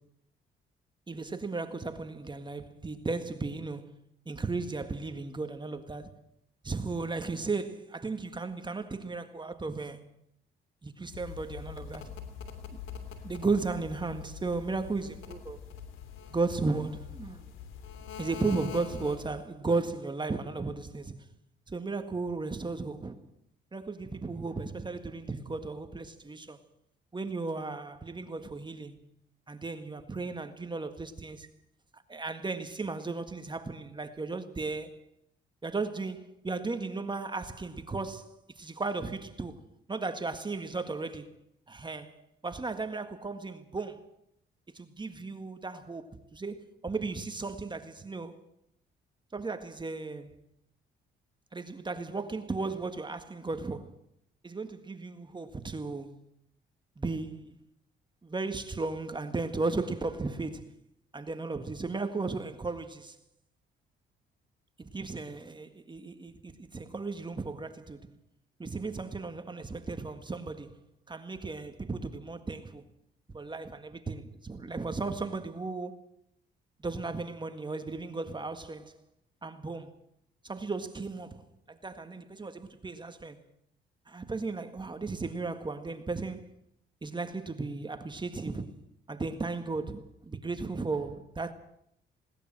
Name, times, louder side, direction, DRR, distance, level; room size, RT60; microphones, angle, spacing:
voice 1, 1.1-3.9 4.2-6.1 6.6-10.0 10.8-12.1 12.7-12.8 13.2-15.6 16.3-17.5 18.2-21.3 21.7-23.2 23.7-26.6 27.1-29.0 29.5-31.5 32.1-35.0 35.6-39.6 39.9-41.3 41.7-44.1 44.7-48.4 49.3-50.3 51.5-53.9 54.4-56.1 57.0-57.6 58.2-60.7 61.1-63.2 64.8-68.1 68.6-70.8 71.1-72.8 73.3-76.0 76.8-78.9 79.4-79.9 80.4-83.4 84.1-86.5 87.0-88.7 89.1-91.5, right 3 dB, 25° right, 1.8 m, -35 dB
sound 1, 11.1-19.5, left 7 dB, 90° left, 3.2 m, -44 dB
20.5 x 18.5 x 7.7 m
cardioid pair, 90°, 20 cm